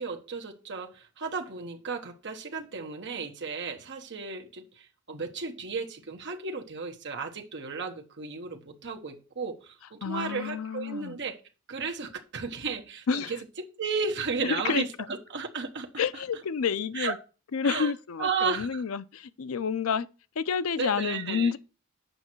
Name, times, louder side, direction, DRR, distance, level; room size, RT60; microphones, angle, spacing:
voice 1, 0.0-11.4 11.7-16.2 16.9-17.1 17.6-17.9 18.2-18.8 20.7-21.5, right 5 dB, 55° right, 1.2 m, -34 dB
voice 2, 10.0-11.2 13.1-13.3 14.6-14.8 16.0-17.1 17.5-20.1 20.4-21.6, left 6 dB, 75° left, 0.5 m, -29 dB
7.9 x 5.5 x 4.5 m
head